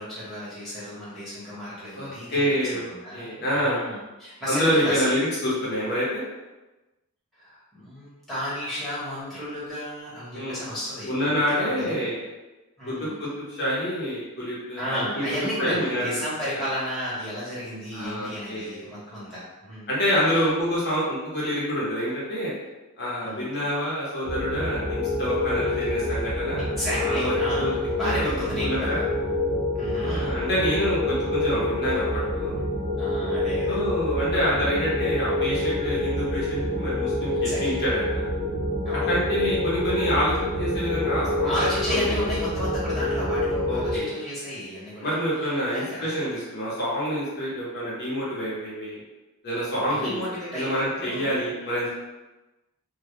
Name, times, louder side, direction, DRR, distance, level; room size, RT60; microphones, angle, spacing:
voice 1, 0.0-3.4 3.6-5.1 7.4-11.1 11.5-12.1 12.8-13.2 14.7-19.9 20.3-20.5 23.2-23.5 26.6-29.0 29.7-30.3 33.0-33.8 37.3-37.8 38.8-39.2 41.4-46.2 49.8-51.4, equal, ahead, -12 dB, 1.0 m, -33 dB
voice 2, 1.9-3.8 4.5-6.2 10.3-10.6 11.1-12.3 12.9-13.0 13.2-15.2 15.6-16.1 17.9-19.0 19.9-22.5 23.0-26.7 27.0-27.7 28.0-28.3 28.6-29.0 30.0-32.0 32.3-32.5 33.7-38.2 39.1-41.5 41.9-42.2 43.7-44.1 45.0-49.0 49.4-50.2 50.5-51.9, equal, 50° left, -7 dB, 0.7 m, -27 dB
sound 1, 24.2-44.0, left 1 dB, 35° right, 0.6 m, -27 dB
2.2 x 2.0 x 2.9 m, 1.1 s
head